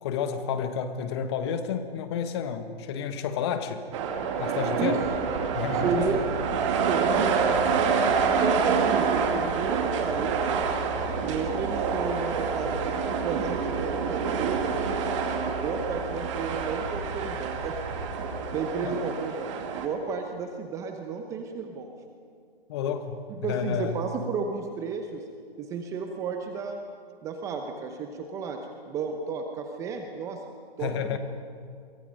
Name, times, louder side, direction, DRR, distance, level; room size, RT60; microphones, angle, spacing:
voice 1, 0.0-3.8 4.4-5.0 5.5-6.0 18.8-18.9 22.7-24.0 30.8-31.2, left 7 dB, 25° left, 9 dB, 1.3 m, -30 dB
sound 1, 3.9-19.9, right 6 dB, 30° right, 2.4 m, -27 dB
sound 2, 5.0-18.5, right 2 dB, 70° right, 7.8 m, -39 dB
voice 2, 5.8-6.3 6.9-7.3 8.2-10.7 11.2-14.7 15.6-17.8 18.5-19.5 19.8-21.9 23.3-25.2 25.6-26.8 27.2-28.6 28.9-30.4 30.8-31.2, right 5 dB, 10° right, 4 dB, 0.9 m, -32 dB
29.5 x 23.5 x 5.3 m, 2.3 s
hypercardioid pair, 150°, 30 cm